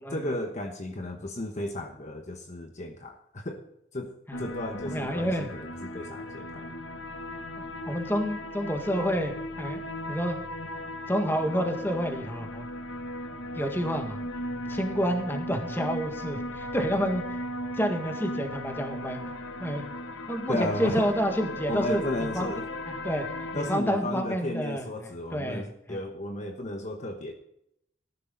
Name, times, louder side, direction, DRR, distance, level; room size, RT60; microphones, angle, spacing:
voice 1, 0.1-3.6 3.9-4.1 4.4-6.7 20.5-21.1 21.7-22.7 23.5-27.3, left 1 dB, 40° left, 4 dB, 1.1 m, -34 dB
sound 1, 4.3-23.8, left 1 dB, 80° left, 1.3 m, -37 dB
voice 2, 4.8-5.5 7.6-9.8 10.1-10.4 11.1-12.6 13.5-14.2 14.7-17.2 17.8-19.2 19.6-19.8 20.3-22.5 22.9-23.2 23.5-26.0, equal, 10° left, 4 dB, 1.8 m, -29 dB
14.0 x 11.0 x 3.9 m, 0.76 s
head